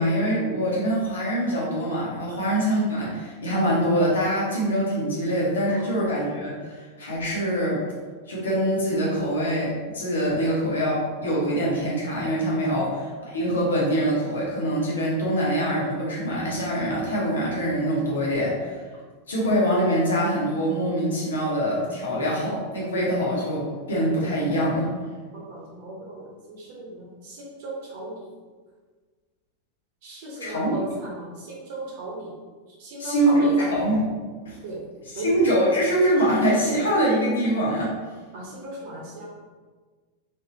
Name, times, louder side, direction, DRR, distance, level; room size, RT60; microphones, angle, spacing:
voice 1, 0.0-7.8 8.3-18.8 19.3-24.9 30.4-30.8 33.0-34.1 34.4-34.6 35.0-37.9, right 1 dB, 70° left, -5 dB, 1.3 m, -24 dB
voice 2, 25.3-28.3 30.0-32.3 32.8-33.7 34.6-34.8 35.1-35.3 38.3-39.3, right 2 dB, 50° right, -3 dB, 1.0 m, -37 dB
3.8 x 3.6 x 2.8 m, 1.4 s
figure-of-eight pair, 90°, 0 cm